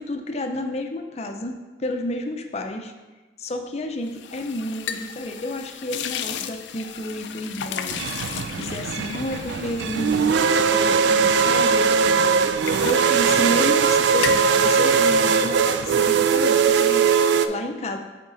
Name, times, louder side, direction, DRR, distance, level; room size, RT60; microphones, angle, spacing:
voice 1, 0.0-2.9 3.4-18.0, left 1 dB, 35° left, 5 dB, 0.5 m, -31 dB
sound 1, 4.1-11.8 12.2-13.9 14.1-14.5, left 8 dB, 85° left, 0.4 m, -34 dB
sound 2, 7.9-17.5, right 6 dB, 70° right, 0.3 m, -20 dB
8.1 x 3.6 x 3.8 m, 1.2 s
head